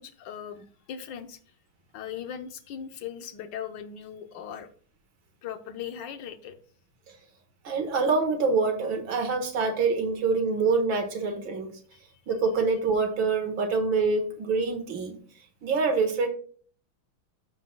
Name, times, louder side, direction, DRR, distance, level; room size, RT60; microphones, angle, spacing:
voice 1, 0.0-1.4 1.9-4.7 5.4-6.5 11.9-12.0, left 8 dB, 65° left, 8 dB, 1.4 m, -39 dB
voice 2, 7.6-11.7 12.3-15.2 15.6-16.3, right 4 dB, 65° right, 5 dB, 2.1 m, -25 dB
14.0 x 5.8 x 2.3 m, 0.43 s
omnidirectional pair, 2.4 m